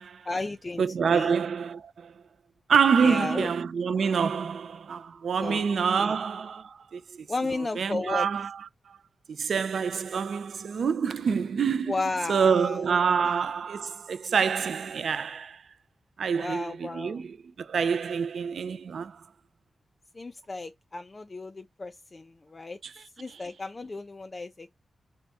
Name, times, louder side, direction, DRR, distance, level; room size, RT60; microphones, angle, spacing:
voice 1, 0.3-0.8 1.1-1.3 3.0-3.5 5.4-5.7 6.0-6.2 7.3-8.3 11.9-13.1 16.4-17.2 20.1-22.8 23.2-24.7, left 3 dB, 30° left, 0.3 m, -34 dB
voice 2, 0.8-2.1 2.7-7.3 7.8-9.0 9.3-15.6 16.2-19.2 22.8-22.9 23.3-23.4, right 6 dB, 70° right, 0.3 m, -27 dB
3.4 x 2.1 x 3.8 m
wide cardioid pair, 110°, 0 cm